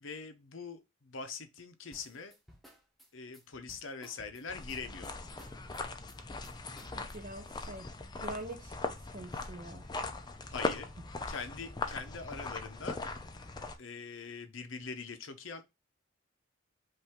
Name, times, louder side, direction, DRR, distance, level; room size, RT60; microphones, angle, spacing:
voice 1, 0.0-2.3 3.1-5.1 10.5-10.9 11.3-13.0 13.8-15.6, left 5 dB, 75° left, 0.9 m, -43 dB
sound 1, 1.9-7.4, equal, ahead, 1.0 m, -58 dB
sound 2, 4.5-13.8, left 3 dB, 20° left, 0.5 m, -40 dB
voice 2, 6.9-7.9 8.2-8.8 9.1-9.9, right 2 dB, 40° right, 0.7 m, -44 dB
5.5 x 2.7 x 3.6 m
head